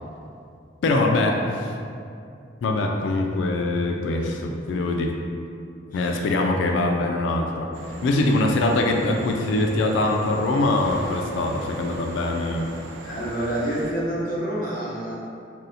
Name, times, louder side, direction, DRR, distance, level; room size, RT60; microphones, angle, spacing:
voice 1, 0.8-1.7 2.6-5.1 5.9-7.7 8.0-12.7, left 2 dB, 85° left, 2 dB, 0.3 m, -23 dB
voice 2, 5.9-6.3 13.0-15.1, right 1 dB, 50° left, -6 dB, 0.7 m, -28 dB
sound 1, 7.7-13.9, right 2 dB, 90° right, 0.3 m, -40 dB
2.7 x 2.0 x 3.9 m, 2.4 s
head